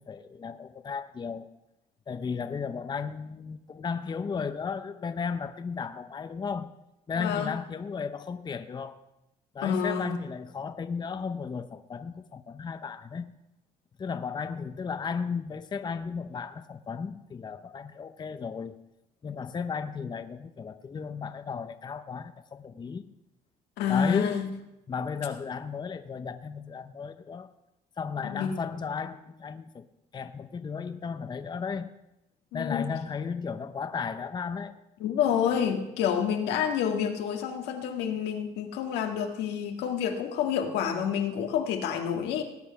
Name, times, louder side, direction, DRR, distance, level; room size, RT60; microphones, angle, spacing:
voice 1, 0.0-1.5 2.1-6.7 7.1-9.0 9.5-13.3 14.0-18.7 19.2-23.0 23.9-24.4 24.9-27.5 28.0-29.9 30.1-31.9 32.5-34.7, left 5 dB, 25° left, 10 dB, 0.7 m, -34 dB
voice 2, 7.2-7.5 9.6-10.1 23.8-24.5 28.2-28.6 32.5-32.9 35.0-42.4, left 8 dB, 85° left, 4 dB, 1.8 m, -28 dB
18.5 x 8.4 x 5.6 m, 0.92 s
cardioid pair, 110°, 17 cm